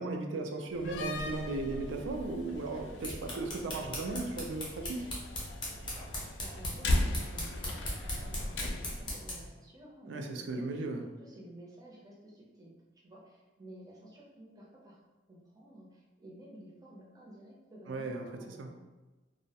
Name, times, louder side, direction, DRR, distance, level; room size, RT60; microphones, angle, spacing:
voice 1, 0.0-5.2 10.1-11.1 17.9-18.7, right 3 dB, 85° right, 4 dB, 0.3 m, -36 dB
Slam, 0.7-9.1, left 1 dB, 70° left, 0.3 m, -37 dB
sound 1, 2.7-9.5, left 1 dB, 25° left, 0.6 m, -40 dB
voice 2, 6.2-10.9 11.2-12.7 13.0-15.0 15.3-18.8, right 1 dB, 20° right, -4 dB, 0.5 m, -52 dB
2.2 x 2.0 x 2.7 m, 1.2 s
head